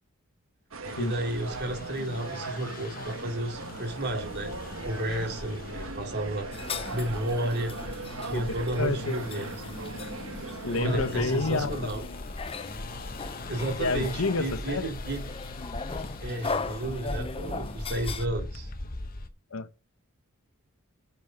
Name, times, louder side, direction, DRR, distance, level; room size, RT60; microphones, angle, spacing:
sound 1, 0.7-11.2, right 3 dB, 70° right, 1.5 m, -39 dB
sound 2, 0.8-19.3, left 2 dB, 45° left, 1.1 m, -40 dB
voice 1, 0.9-4.5 4.9-6.5 6.9-7.7 8.2-9.5 10.7-12.0 13.5-15.3 16.2-18.7, right 1 dB, 50° right, 3.7 m, -32 dB
sound 3, 6.5-18.3, left 4 dB, 25° left, 0.7 m, -39 dB
voice 2, 8.8-9.2 10.6-12.2 13.8-14.9 19.5-19.8, left 3 dB, 70° left, 1.0 m, -29 dB
8.4 x 7.2 x 5.1 m
head